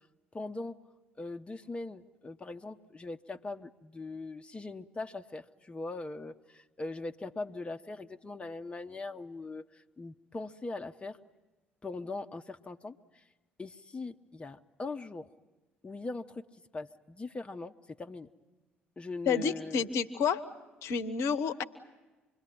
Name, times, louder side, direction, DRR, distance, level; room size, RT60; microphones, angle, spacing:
voice 1, 0.3-0.8 1.2-11.2 11.8-13.0 13.6-15.3 15.8-16.5 16.7-18.3 19.0-19.9, left 3 dB, 20° left, 6 dB, 0.8 m, -41 dB
voice 2, 19.3-20.4 20.8-21.6, left 6 dB, 55° left, 13 dB, 0.9 m, -29 dB
26.5 x 21.5 x 8.8 m, 1.2 s
figure-of-eight pair, 50°, 6 cm